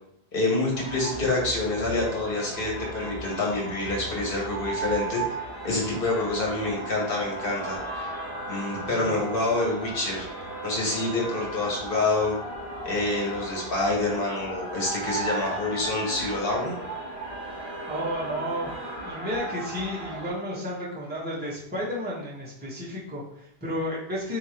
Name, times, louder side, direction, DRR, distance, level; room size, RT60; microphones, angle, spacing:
voice 1, 0.3-5.4 5.6-8.1 8.5-12.3 12.8-16.8, left 2 dB, 60° left, -3 dB, 1.4 m, -27 dB
sound 1, 0.7-20.3, right 2 dB, 25° left, 1.3 m, -36 dB
voice 2, 8.8-9.1 17.5-18.7 19.0-24.4, equal, 10° right, -7 dB, 1.1 m, -32 dB
3.4 x 2.8 x 4.3 m, 0.72 s
omnidirectional pair, 1.1 m